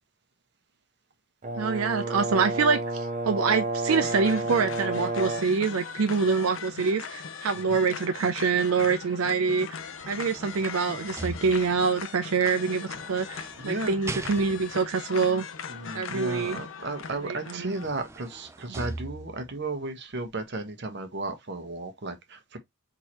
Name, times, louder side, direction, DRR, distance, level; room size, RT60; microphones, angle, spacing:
Brass instrument, 1.4-5.6, right 2 dB, 35° right, 0.8 m, -31 dB
voice 1, 1.6-9.7 10.1-15.4 15.9-16.6 17.6-17.7, right 5 dB, 90° right, 0.5 m, -25 dB
sound 1, 3.9-17.9, left 6 dB, 65° left, 0.7 m, -40 dB
sound 2, 9.8-12.0 12.9-14.9 17.1-17.2 17.6-19.6 20.1-20.3, right 2 dB, 15° right, 0.4 m, -41 dB
voice 2, 13.6-14.0 15.7-22.6, right 2 dB, 55° right, 1.1 m, -34 dB
4.4 x 3.7 x 2.9 m
head